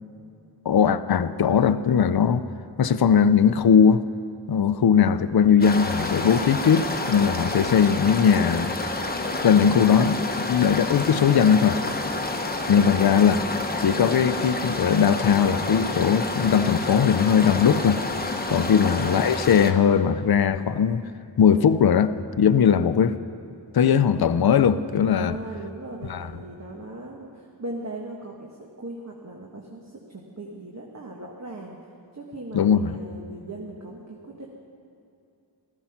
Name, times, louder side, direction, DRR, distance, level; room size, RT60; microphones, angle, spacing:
voice 1, 0.7-2.4 2.8-4.0 4.5-8.8 9.4-11.8 12.7-13.4 13.8-18.0 18.5-21.0 21.4-23.2 23.7-25.3 26.1-26.3 32.5-32.9, left 7 dB, 55° left, 0.6 m, -19 dB
sound 1, 5.6-19.7, left 2 dB, 20° left, 1.0 m, -29 dB
voice 2, 25.2-31.8 32.1-34.5, right 2 dB, 35° right, 1.5 m, -39 dB
14.5 x 14.5 x 5.9 m
wide cardioid pair, 95°, 45 cm